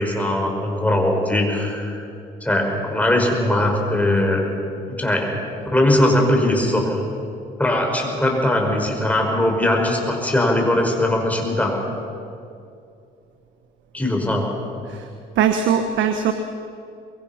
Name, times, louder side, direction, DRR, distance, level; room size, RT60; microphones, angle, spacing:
voice 1, 0.0-2.1 2.4-4.5 4.8-5.3 5.7-7.0 7.6-11.8 13.9-14.5, left 1 dB, 5° left, 1 dB, 5.4 m, -20 dB
voice 2, 15.4-16.3, right 8 dB, 75° right, 7 dB, 1.3 m, -20 dB
23.5 x 22.5 x 5.9 m, 2.5 s
cardioid pair, 85°, 20 cm